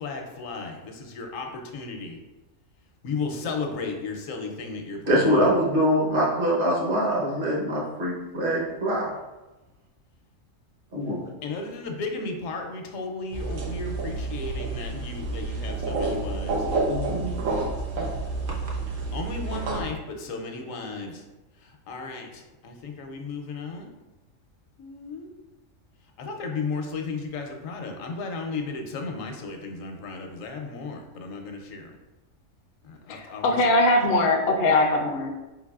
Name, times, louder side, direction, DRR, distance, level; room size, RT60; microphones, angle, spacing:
voice 1, 0.0-2.2 3.0-5.5 11.4-16.7 19.1-21.2 21.6-23.9 24.8-25.3 26.2-31.9 32.8-33.6, left 4 dB, 80° left, 3 dB, 1.1 m, -34 dB
voice 2, 5.1-9.1 10.9-11.3 16.9-17.3, equal, 45° right, -3 dB, 1.1 m, -24 dB
sound 1, 13.3-19.8, right 3 dB, 80° right, 1.1 m, -29 dB
voice 3, 33.1-35.3, left 2 dB, 65° left, 3 dB, 0.6 m, -21 dB
4.8 x 3.9 x 2.4 m, 1.1 s
omnidirectional pair, 1.4 m